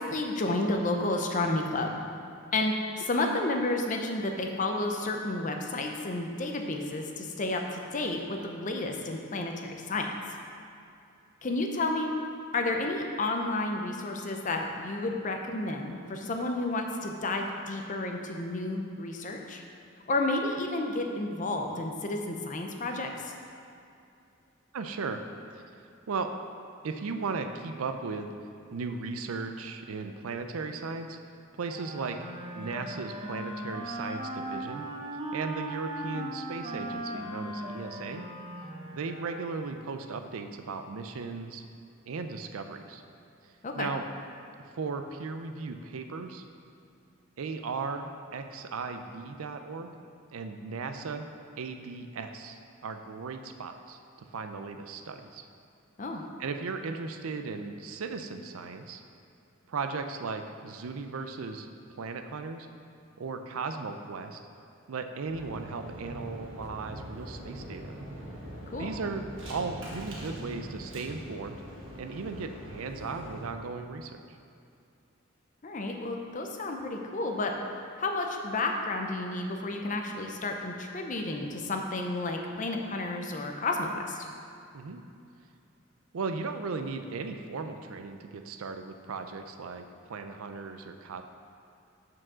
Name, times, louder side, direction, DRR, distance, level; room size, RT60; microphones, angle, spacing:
voice 1, 0.0-2.0 2.5-10.1 11.4-12.1 12.5-19.6 20.1-23.3 43.6-43.9 56.0-56.2 68.7-68.9 75.6-77.5 78.0-84.3, left 2 dB, 35° left, 3 dB, 0.6 m, -31 dB
voice 2, 24.7-25.2 25.5-25.6 26.1-26.3 26.8-28.3 28.7-31.2 31.5-32.2 32.5-34.9 35.3-38.2 38.9-41.6 42.0-43.0 43.8-44.0 44.7-46.4 47.4-49.9 50.3-51.3 51.6-54.0 54.3-55.4 56.4-59.0 59.7-61.7 62.0-62.7 63.2-64.4 64.9-68.0 68.8-71.6 72.0-74.1 84.7-85.0 86.1-89.8 90.1-91.2, right 4 dB, 85° right, 7 dB, 0.5 m, -36 dB
Wind instrument woodwind instrument, 31.6-39.7, right 1 dB, 25° right, 0.7 m, -38 dB
sound 1, 65.3-73.4, equal, 60° right, 1.3 m, -43 dB
6.2 x 4.7 x 6.1 m, 2.5 s
head